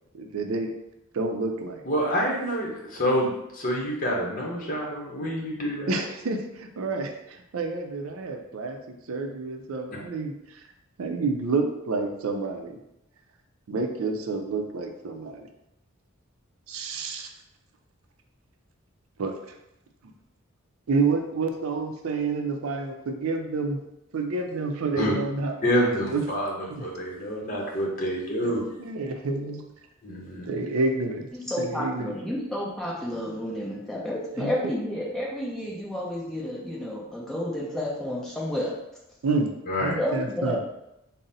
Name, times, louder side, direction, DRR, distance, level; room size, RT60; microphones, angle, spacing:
voice 1, 0.1-0.7 1.1-1.8 5.9-10.7 11.0-12.8 13.7-15.5 16.7-17.3 19.2-19.3 20.9-23.8 24.1-26.3 26.7-26.9 28.8-29.6 30.5-31.3 31.6-32.1 34.4-34.5 39.2-39.5 39.8-40.6, right 3 dB, 90° right, 5 dB, 0.5 m, -29 dB
voice 2, 1.9-5.9 25.0-25.1 25.6-26.5 26.8-28.6 30.0-30.5 39.7-40.0, equal, 40° left, -2 dB, 0.8 m, -27 dB
voice 3, 31.3-38.7 40.0-40.6, left 1 dB, ahead, -5 dB, 0.6 m, -30 dB
3.8 x 2.0 x 3.9 m, 0.86 s
head